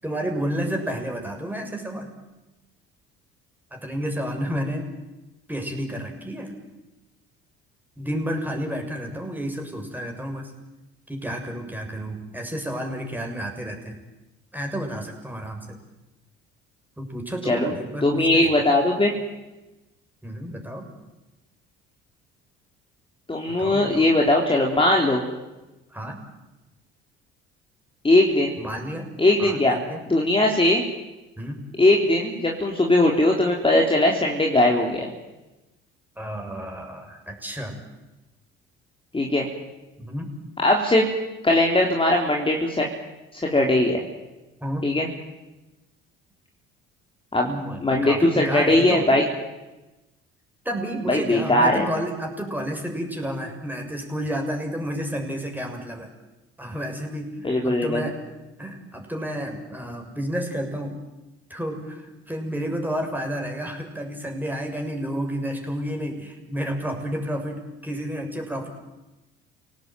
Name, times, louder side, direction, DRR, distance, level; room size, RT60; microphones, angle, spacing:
voice 1, 0.0-2.1 3.7-4.9 5.5-6.6 8.0-10.5 11.1-14.0 14.5-15.8 17.0-18.7 20.2-20.9 23.6-24.1 25.9-26.2 28.6-29.1 29.4-30.0 31.4-31.6 36.2-37.8 40.0-40.4 44.6-44.9 47.4-49.1 50.6-56.1 56.6-58.2 58.6-61.0 61.5-68.7, equal, 5° right, 2 dB, 7.0 m, -31 dB
voice 2, 18.0-19.1 23.3-25.2 28.0-28.6 29.2-29.8 30.1-30.8 31.8-35.1 39.1-39.5 40.6-41.1 41.4-42.9 43.3-44.0 44.8-45.1 47.3-47.5 47.8-49.2 51.1-51.9 57.4-58.0, left 1 dB, 15° left, 0 dB, 4.0 m, -20 dB
28.0 x 18.5 x 9.4 m, 1.1 s
hypercardioid pair, 60°, 30 cm